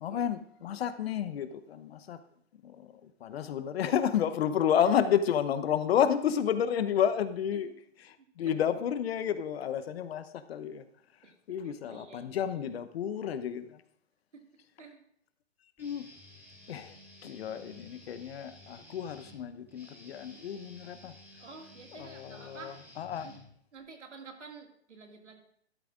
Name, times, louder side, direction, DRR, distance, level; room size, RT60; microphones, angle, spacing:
voice 1, 0.0-2.2 2.6-7.7 8.0-10.8 11.2-13.8 15.8-16.1 16.7-21.1 21.9-23.3, left 9 dB, 60° left, 12 dB, 0.8 m, -31 dB
voice 2, 8.2-8.5 11.2-11.3 11.6-12.3 14.3-14.4 14.8-15.0 21.4-22.8 23.2-23.3 23.7-25.4, right 4 dB, 90° right, 3 dB, 2.1 m, -49 dB
Guitar, 15.8-23.8, left 1 dB, 5° right, 2.9 m, -54 dB
12.5 x 11.5 x 2.5 m, 0.67 s
hypercardioid pair, 130°, 35 cm